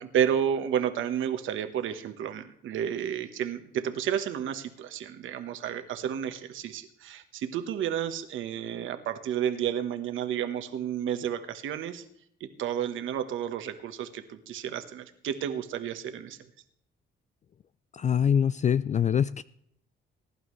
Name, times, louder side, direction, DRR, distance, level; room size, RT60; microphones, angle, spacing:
voice 1, 0.0-12.0 12.4-16.4, right 9 dB, 80° right, 9 dB, 1.3 m, -31 dB
voice 2, 17.9-19.4, left 8 dB, 35° left, 16 dB, 0.4 m, -24 dB
21.0 x 11.0 x 3.2 m, 0.72 s
cardioid pair, 90°, 20 cm